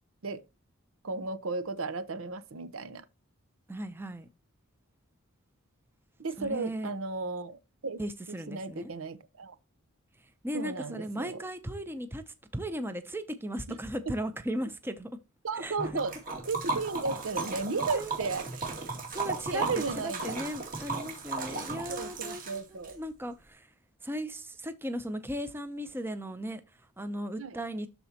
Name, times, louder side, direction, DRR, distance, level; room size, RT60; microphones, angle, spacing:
voice 1, 1.0-3.1 6.2-8.0 8.3-9.5 10.5-11.4 14.1-14.2 15.4-16.1 16.5-18.7 19.5-20.3 21.9-23.0 27.4-27.6, right 3 dB, 70° right, 0.8 m, -34 dB
voice 2, 3.7-4.3 6.4-6.9 8.0-8.9 10.4-15.1 15.6-16.0 17.9-18.2 19.1-19.6 20.0-23.7 24.0-27.9, equal, 10° right, 0.6 m, -37 dB
Liquid, 15.8-22.9, right 3 dB, 40° right, 2.2 m, -35 dB
12.5 x 4.2 x 2.8 m
head